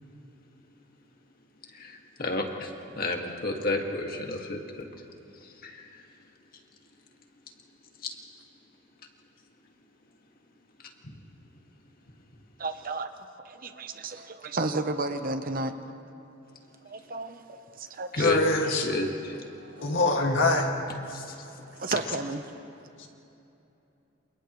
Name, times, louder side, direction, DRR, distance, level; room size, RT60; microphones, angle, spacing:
voice 1, 1.7-2.7 3.0-4.9 5.6-6.0 8.0-8.1 18.1-18.4 18.8-19.4 21.1-21.4, left 2 dB, 50° left, 2 dB, 2.1 m, -31 dB
voice 2, 12.6-13.1 13.4-15.7 16.8-18.3 19.6-20.0 21.1-22.4, right 2 dB, 45° right, 8 dB, 1.0 m, -33 dB
voice 3, 18.2-18.9 19.8-20.7 23.0-23.1, left 2 dB, 65° left, 1 dB, 2.3 m, -24 dB
28.5 x 28.5 x 3.3 m, 2.9 s
head